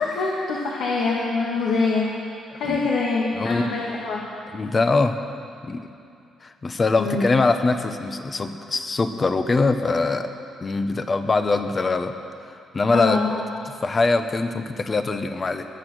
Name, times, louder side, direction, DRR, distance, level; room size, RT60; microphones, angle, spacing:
voice 1, 0.0-2.1 2.5-4.2 7.0-7.3 12.9-13.3, left 4 dB, 75° left, -4 dB, 2.1 m, -24 dB
voice 2, 3.3-3.7 4.5-5.2 5.6-5.8 6.4-10.3 10.6-12.1 12.5-13.4 13.8-15.7, left 3 dB, 30° left, 8 dB, 1.1 m, -23 dB
22.0 x 9.0 x 6.4 m, 2.7 s
cardioid pair, 90°, 0 cm